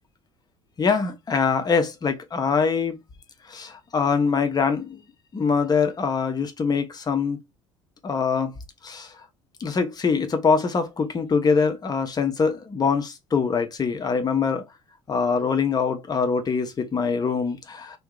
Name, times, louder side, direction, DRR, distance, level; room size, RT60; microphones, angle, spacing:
voice 1, 0.8-3.0 3.5-5.0 5.3-7.4 8.0-8.5 8.8-9.1 9.6-14.6 15.1-18.0, left 5 dB, 25° left, 0.8 m, -23 dB
2.7 x 2.2 x 3.7 m
figure-of-eight pair, 60°, 15 cm